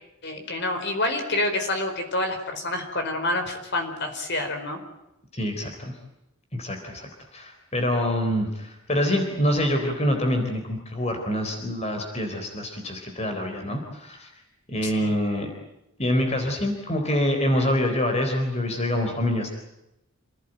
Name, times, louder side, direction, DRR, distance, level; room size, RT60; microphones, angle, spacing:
voice 1, 0.2-4.8 14.8-15.2, left 2 dB, 50° left, 5 dB, 4.6 m, -28 dB
voice 2, 5.3-5.9 6.5-14.3 14.7-15.5 16.0-19.5, left 1 dB, 30° left, 4 dB, 3.9 m, -26 dB
28.0 x 18.0 x 9.1 m, 0.90 s
head